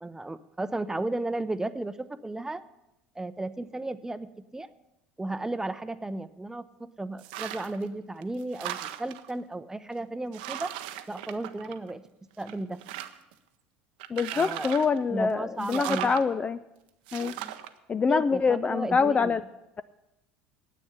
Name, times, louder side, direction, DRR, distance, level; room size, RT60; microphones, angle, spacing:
voice 1, 0.0-2.6 3.2-4.7 5.2-10.7 11.1-12.0 12.4-12.8 14.3-14.7 15.1-16.1 17.4-17.6 18.1-19.3, right 2 dB, 10° right, 13 dB, 0.7 m, -34 dB
sound 1, 7.2-7.8 8.2-9.3 9.9-10.0 10.3-12.1 12.4-13.3 14.0-15.0 15.6-16.2 17.1-17.7, right 13 dB, 65° right, 0.7 m, -37 dB
voice 2, 14.1-16.6 17.1-17.3 17.9-19.4, left 5 dB, 25° left, 15 dB, 0.4 m, -25 dB
9.8 x 8.6 x 9.8 m, 0.93 s
figure-of-eight pair, 70°, 5 cm